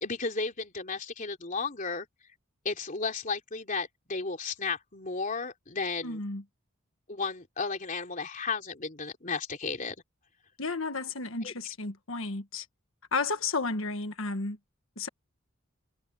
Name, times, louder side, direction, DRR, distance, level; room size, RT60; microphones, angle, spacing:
voice 1, 0.0-2.1 2.6-6.2 7.1-9.9 11.4-11.5, left 4 dB, 40° left, 3.3 m, -34 dB
voice 2, 6.0-6.4 10.6-12.6 13.1-14.6 15.0-15.1, left 3 dB, 70° left, 1.5 m, -32 dB
head